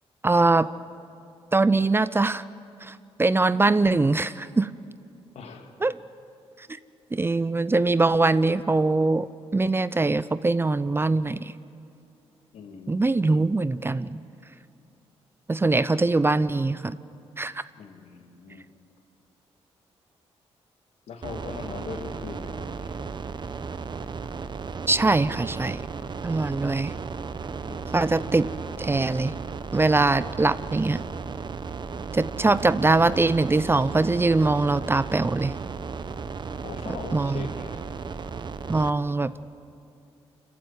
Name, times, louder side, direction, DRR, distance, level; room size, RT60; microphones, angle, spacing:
voice 1, 0.2-0.7 1.5-2.4 2.8-4.7 5.8-6.0 7.1-11.5 12.9-14.2 15.5-17.0 17.4-17.6 24.8-25.8 26.2-26.9 27.9-28.5 28.8-29.4 29.7-31.0 32.1-35.5 37.1-37.4 38.7-39.3, right 3 dB, 20° right, 16 dB, 0.6 m, -22 dB
voice 2, 5.3-5.7 12.5-13.5 17.8-18.7 21.1-22.9 27.7-28.5 36.6-37.8, left 5 dB, 75° left, 5 dB, 2.1 m, -41 dB
sound 1, 21.2-38.9, right 5 dB, 45° right, 1.0 m, -35 dB
25.0 x 14.5 x 9.3 m, 2.5 s
cardioid pair, 75°, 11 cm